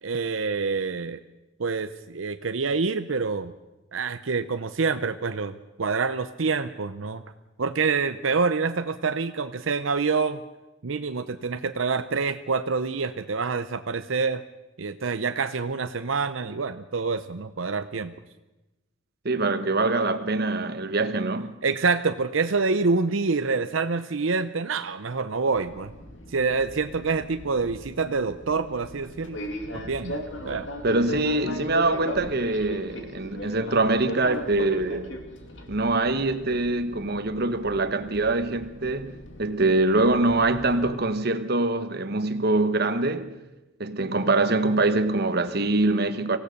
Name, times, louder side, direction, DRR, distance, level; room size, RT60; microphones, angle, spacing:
voice 1, 0.0-1.2 1.6-3.5 3.9-7.2 7.6-10.4 10.8-14.4 14.8-18.1 21.6-25.9 26.3-29.4 29.7-30.7, right 4 dB, 80° right, 0.7 m, -26 dB
voice 2, 19.2-21.6 30.8-35.1 35.7-43.4 43.8-46.4, right 2 dB, 55° right, 1.2 m, -24 dB
Fixed-wing aircraft airplane, 25.5-40.9, left 1 dB, 65° left, 2.6 m, -39 dB
24.5 x 16.5 x 6.7 m
head